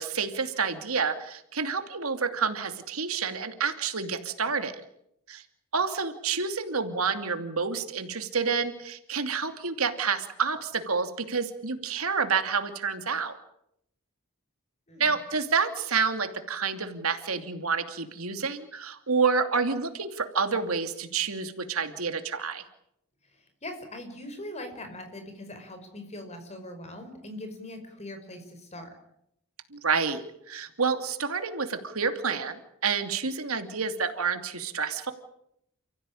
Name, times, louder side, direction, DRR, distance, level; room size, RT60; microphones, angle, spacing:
voice 1, 0.0-4.7 5.3-5.4 5.7-13.4 15.0-22.6 29.7-30.2 30.5-35.1, right 5 dB, 80° right, 7 dB, 2.7 m, -29 dB
voice 2, 14.9-15.2 23.3-28.9, left 1 dB, 30° left, 7 dB, 5.3 m, -41 dB
30.0 x 15.5 x 9.9 m, 0.78 s
head